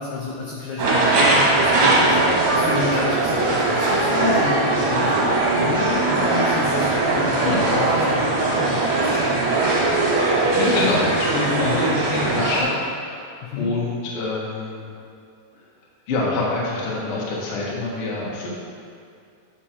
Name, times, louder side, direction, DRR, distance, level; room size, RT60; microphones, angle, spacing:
voice 1, 0.0-9.4 13.4-13.7, left 4 dB, 80° left, -3 dB, 1.8 m, -30 dB
sound 1, 0.8-12.6, right 2 dB, 60° right, 2.6 m, -20 dB
voice 2, 7.4-7.7 10.5-14.9 16.1-18.5, left 2 dB, 65° left, -5 dB, 1.4 m, -25 dB
9.4 x 5.8 x 2.9 m, 2.5 s
omnidirectional pair, 4.5 m